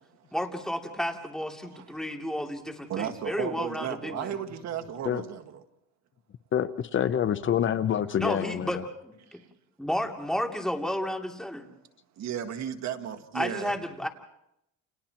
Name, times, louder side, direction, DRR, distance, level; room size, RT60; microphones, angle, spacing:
voice 1, 0.3-4.4 8.2-9.4 9.8-11.7 13.3-14.1, equal, ahead, 2 dB, 2.7 m, -32 dB
voice 2, 2.9-5.6 9.3-9.4 12.2-13.7, right 9 dB, 60° right, 5 dB, 1.8 m, -35 dB
voice 3, 6.5-8.8, left 9 dB, 40° left, 12 dB, 0.7 m, -27 dB
30.0 x 29.5 x 3.0 m, 0.80 s
cardioid pair, 110°, 32 cm